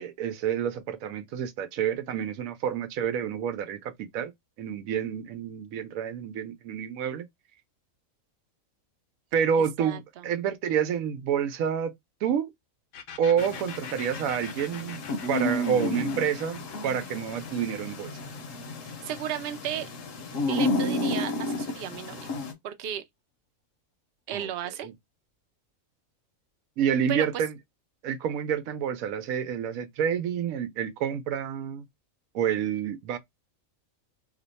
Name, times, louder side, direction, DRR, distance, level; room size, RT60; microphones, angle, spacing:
voice 1, 0.0-4.3 4.6-7.3 9.3-11.9 12.2-12.5 13.2-15.0 15.3-18.2 24.3-24.5 24.8-24.9 26.8-27.5 28.0-31.9 32.3-33.2, right 8 dB, 90° right, 1.0 m, -28 dB
voice 2, 9.6-10.2 18.8-19.9 20.5-22.3 22.6-23.0 24.3-24.9 27.1-27.4, right 10 dB, 60° right, 0.7 m, -34 dB
sound 1, 12.9-20.4, left 7 dB, 90° left, 1.1 m, -45 dB
sound 2, 13.4-22.5, left 2 dB, 70° left, 1.1 m, -32 dB
2.8 x 2.1 x 3.9 m
omnidirectional pair, 1.4 m